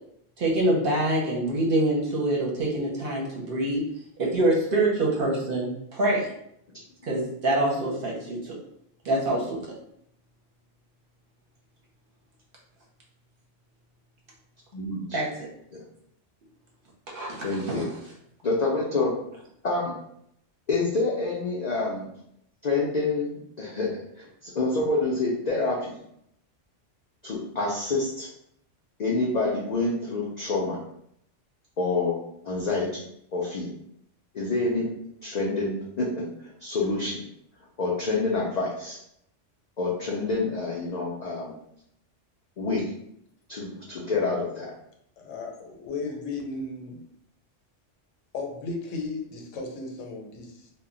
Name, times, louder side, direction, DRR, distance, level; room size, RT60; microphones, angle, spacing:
voice 1, 0.4-3.8 4.2-6.3 7.0-8.5 9.0-9.6 15.1-15.3 17.1-17.9, right 1 dB, 55° right, -3 dB, 0.7 m, -25 dB
voice 2, 14.7-15.2 15.7-15.8 17.4-17.9 18.4-19.2 19.6-19.9 20.7-22.1 22.6-23.9 24.2-26.0 27.2-28.3 29.0-30.8 31.8-32.2 32.4-33.1 33.3-33.7 34.3-34.9 35.2-37.2 37.8-39.0 39.8-41.6 42.6-42.9 43.5-44.7, left 3 dB, 70° left, -3 dB, 0.4 m, -27 dB
voice 3, 45.2-47.0 48.3-50.7, left 3 dB, 85° left, 2 dB, 0.9 m, -35 dB
2.1 x 2.1 x 3.7 m, 0.74 s
omnidirectional pair, 1.3 m